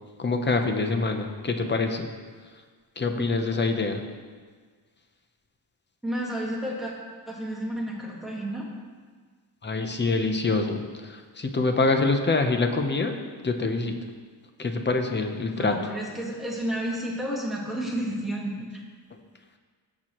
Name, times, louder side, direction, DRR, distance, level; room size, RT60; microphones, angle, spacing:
voice 1, 0.2-2.1 2.4-2.5 3.0-4.0 9.6-13.1 13.4-14.0 14.6-15.7, left 3 dB, 25° left, 5 dB, 0.7 m, -25 dB
voice 2, 6.0-6.9 7.3-8.7 15.6-18.5, right 1 dB, ahead, -4 dB, 1.6 m, -31 dB
16.0 x 6.1 x 3.0 m, 1.5 s
wide cardioid pair, 160°, 42 cm